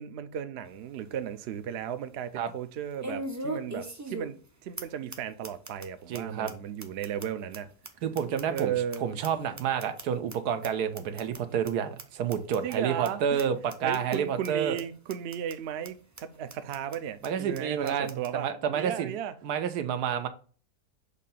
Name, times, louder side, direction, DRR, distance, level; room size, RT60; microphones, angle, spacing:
voice 1, 0.0-7.7 8.5-9.1 12.6-13.4 13.8-19.4, right 9 dB, 65° right, 0.6 m, -35 dB
sound 1, 0.7-0.8 1.2-1.3 3.0-4.5 4.8-4.9 5.1-5.2 5.4-5.9 6.1-6.2 6.5-6.6 6.8-9.0 9.2-10.3 10.6-10.7 11.0-11.4 11.7-11.8 12.0-12.1 12.3-12.8 13.0-13.1 13.4-13.5 13.7-14.2 14.4-14.5 14.8-14.9 15.1-15.5 15.8-15.9 16.2-16.3 16.5-17.0 17.2-17.3 17.5-17.6 17.9-18.3, right 1 dB, 25° right, 0.3 m, -39 dB
voice 2, 6.1-6.5 8.0-8.7 9.0-14.8 17.2-19.1 19.4-20.3, right 8 dB, 85° right, 1.3 m, -29 dB
6.6 x 2.8 x 5.4 m
omnidirectional pair, 1.7 m